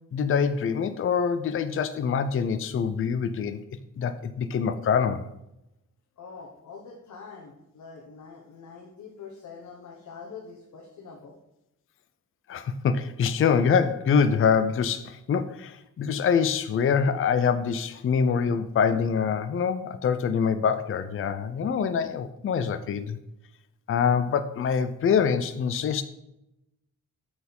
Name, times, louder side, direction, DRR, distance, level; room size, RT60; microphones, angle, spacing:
voice 1, 0.1-3.6 4.0-5.3 12.5-23.2 23.9-26.0, left 6 dB, 45° left, 10 dB, 0.5 m, -25 dB
voice 2, 6.2-11.4, left 5 dB, 70° left, 0 dB, 1.3 m, -44 dB
8.7 x 4.4 x 5.3 m, 0.87 s
wide cardioid pair, 175°, 31 cm